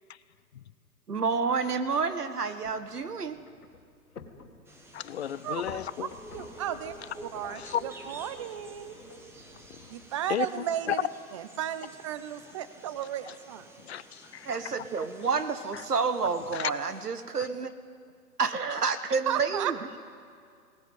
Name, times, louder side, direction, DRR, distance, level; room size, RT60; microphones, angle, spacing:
voice 1, 1.1-3.4 14.5-17.7 18.4-20.0, right 5 dB, 75° right, 10 dB, 1.6 m, -29 dB
sound 1, 2.6-10.1, left 5 dB, 70° left, 2.2 m, -50 dB
sound 2, 4.6-17.0, right 2 dB, 5° right, 1.3 m, -50 dB
voice 2, 4.9-6.1 7.4-7.8 10.3-10.5 10.9-11.0 13.8-14.9 15.7-15.8 16.5-16.7, left 10 dB, 45° left, 17 dB, 0.7 m, -33 dB
voice 3, 5.4-7.0 7.2-9.0 9.9-13.7 19.3-20.0, right 10 dB, 20° right, 12 dB, 0.6 m, -35 dB
19.5 x 18.5 x 9.4 m, 2.2 s
figure-of-eight pair, 125°, 47 cm